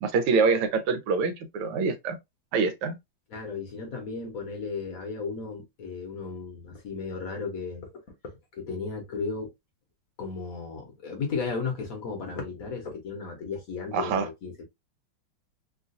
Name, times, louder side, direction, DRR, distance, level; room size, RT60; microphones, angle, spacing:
voice 1, 0.0-2.2 2.5-3.0 13.9-14.3, right 4 dB, 85° right, 1.7 m, -25 dB
voice 2, 3.3-7.9 8.2-9.5 10.2-14.6, left 4 dB, 55° left, 1.1 m, -35 dB
3.7 x 2.4 x 2.5 m
omnidirectional pair, 2.3 m